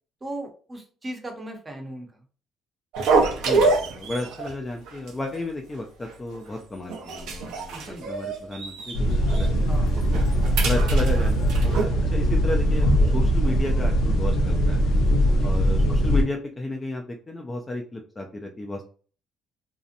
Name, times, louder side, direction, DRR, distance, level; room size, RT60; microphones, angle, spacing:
voice 1, 0.2-2.1 7.7-8.1 9.7-9.9 15.3-15.7, right 1 dB, 20° right, 2 dB, 0.7 m, -37 dB
sound 1, 2.9-4.5 4.9-5.1 5.4-5.5 6.0-6.5 6.9-9.0 9.3-9.5 9.9-11.8, right 3 dB, 85° right, 0.6 m, -26 dB
voice 2, 3.1-10.2 10.6-14.8 15.4-18.8, left 2 dB, 20° left, 2 dB, 0.4 m, -33 dB
sound 2, 8.9-16.2, equal, 75° left, 0.6 m, -21 dB
2.6 x 2.0 x 2.5 m, 0.40 s
cardioid pair, 125°, 0 cm